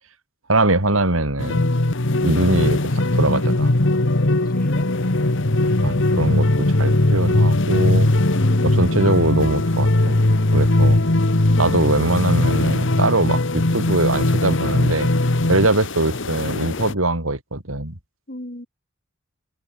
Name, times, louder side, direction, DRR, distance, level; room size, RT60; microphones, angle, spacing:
voice 1, 0.5-1.6 2.2-3.7 5.8-8.1 8.6-10.2 10.5-11.0 11.6-15.1 15.5-18.0, right 2 dB, 85° right, 4.9 m, -22 dB
sound 1, 1.4-16.9, left 1 dB, 65° left, 1.7 m, -19 dB
voice 2, 4.5-4.8 8.3-9.2 11.4-11.7 18.3-18.7, left 1 dB, 45° left, 3.7 m, -34 dB
head